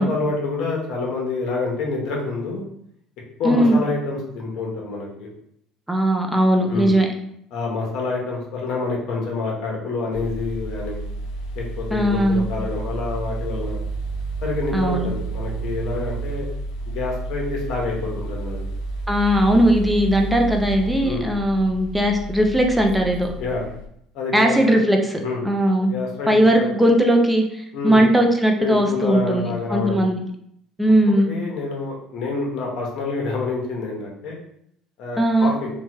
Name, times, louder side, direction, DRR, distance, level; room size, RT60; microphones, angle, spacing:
voice 1, 0.0-2.7 3.4-5.3 6.7-6.9 7.5-11.0 11.5-13.8 14.4-16.5 16.9-18.7 21.0-21.3 23.4-23.7 24.1-24.8 25.2-25.4 25.8-26.3 26.6-26.7 27.7-28.0 28.6-30.0 31.3-34.4 35.0-35.7, left 3 dB, 60° left, -1 dB, 0.9 m, -27 dB
voice 2, 3.4-3.8 5.9-7.1 11.9-12.5 14.7-15.1 19.1-23.3 24.3-25.2 25.4-25.9 26.3-30.2 30.8-31.3 35.2-35.5, right 1 dB, 5° right, 2 dB, 0.5 m, -18 dB
sound 1, 10.1-23.9, right 2 dB, 90° left, 0.5 m, -31 dB
3.0 x 2.2 x 2.8 m, 0.72 s
cardioid pair, 115°, 0 cm